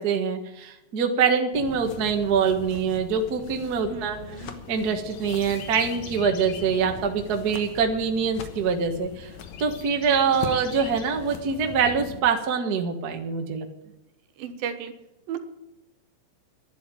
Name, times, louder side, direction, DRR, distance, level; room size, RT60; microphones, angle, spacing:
voice 1, 0.0-4.2 4.7-9.3 9.6-13.7, right 6 dB, 55° right, 4 dB, 1.1 m, -24 dB
sound 1, 1.5-12.2, left 7 dB, 60° left, 2.2 m, -40 dB
voice 2, 3.8-4.6 14.4-14.9 15.3-15.4, right 8 dB, 80° right, 7 dB, 2.9 m, -34 dB
11.5 x 10.0 x 9.2 m, 0.93 s
omnidirectional pair, 4.1 m